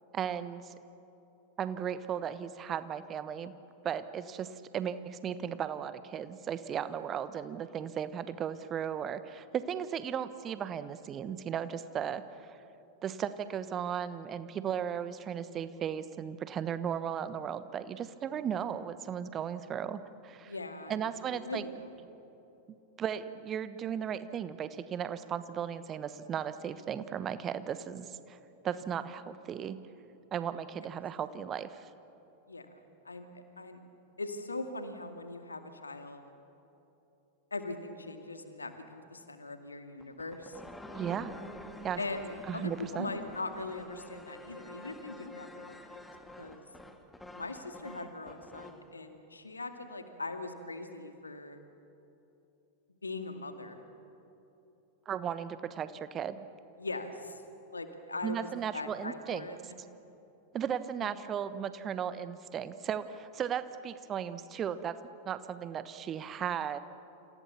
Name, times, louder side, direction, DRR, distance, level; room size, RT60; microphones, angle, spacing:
voice 1, 0.1-0.7 1.6-3.5 3.8-12.5 13.0-20.5 20.9-21.6 23.0-28.4 28.6-29.8 30.3-31.9 40.9-41.3 41.8-42.0 42.5-43.1 55.1-56.5 58.2-59.5 60.5-65.0 65.2-66.8, right 8 dB, 25° right, 13 dB, 1.1 m, -36 dB
voice 2, 20.4-21.9 32.5-33.8 34.2-36.2 37.5-40.6 42.0-46.0 46.4-46.6 47.4-51.6 53.0-53.8 56.8-57.4 57.7-59.6 61.0-61.1, left 2 dB, 80° left, 6 dB, 2.2 m, -41 dB
sound 1, 40.0-48.9, left 1 dB, 5° left, 2.2 m, -48 dB
29.0 x 27.0 x 7.0 m, 3.0 s
figure-of-eight pair, 90°, 0 cm